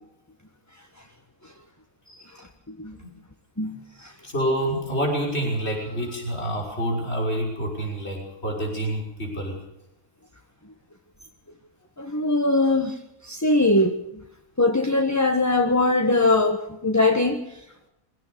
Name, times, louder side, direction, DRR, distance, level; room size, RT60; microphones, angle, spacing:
voice 1, 4.2-9.6, right 1 dB, 45° left, 0 dB, 6.2 m, -27 dB
voice 2, 12.0-12.9 13.3-13.9 14.6-17.4, left 2 dB, 10° left, 5 dB, 1.4 m, -21 dB
24.5 x 17.0 x 6.9 m, 0.84 s
omnidirectional pair, 1.5 m